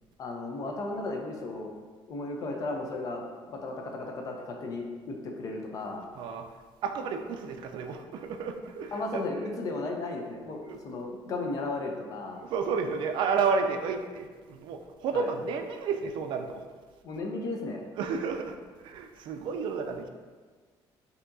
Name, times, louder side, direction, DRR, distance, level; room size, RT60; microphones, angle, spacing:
voice 1, 0.2-1.7 2.1-3.3 3.5-6.1 8.9-12.4 15.1-15.3 17.0-17.8, left 2 dB, 40° left, 1 dB, 0.5 m, -35 dB
voice 2, 6.2-6.5 6.8-9.2 10.6-10.8 12.4-16.6 18.0-20.1, right 5 dB, 60° right, 6 dB, 0.3 m, -31 dB
5.8 x 2.8 x 2.6 m, 1.5 s
cardioid pair, 170°, 9 cm